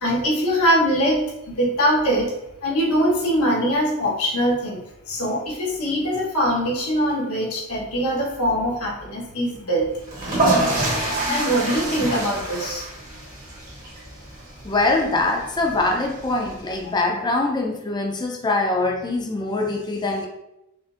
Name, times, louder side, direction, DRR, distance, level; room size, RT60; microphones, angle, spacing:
voice 1, 0.0-2.3 2.6-9.9 11.3-12.9 16.8-17.0, equal, 90° left, -3 dB, 1.1 m, -22 dB
sound 1, 10.0-16.8, right 2 dB, 40° right, 1.3 m, -27 dB
voice 2, 14.6-20.3, left 2 dB, 20° left, 1 dB, 0.5 m, -23 dB
5.3 x 2.5 x 2.4 m, 0.90 s
head